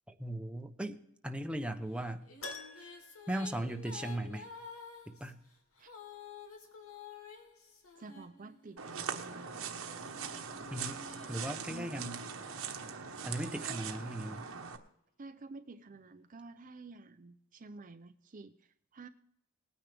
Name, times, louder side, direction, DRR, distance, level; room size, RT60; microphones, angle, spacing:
voice 1, 0.1-2.3 2.8-2.9 3.3-4.5 5.1-5.4 10.7-11.0 11.3-12.2 13.2-14.5, right 1 dB, 5° right, 0.8 m, -38 dB
Female singing, 2.0-8.9 9.6-13.3, left 5 dB, 85° left, 2.4 m, -52 dB
Keyboard (musical), 2.4-4.5 4.7-4.8 7.5-7.6 7.9-8.0, left 3 dB, 70° left, 1.3 m, -48 dB
voice 2, 8.0-9.5 11.7-12.2 13.6-13.8 15.2-19.1, right 3 dB, 40° right, 0.5 m, -50 dB
sound 1, 8.8-14.8, right 6 dB, 70° right, 1.2 m, -41 dB
20.0 x 9.6 x 3.4 m
head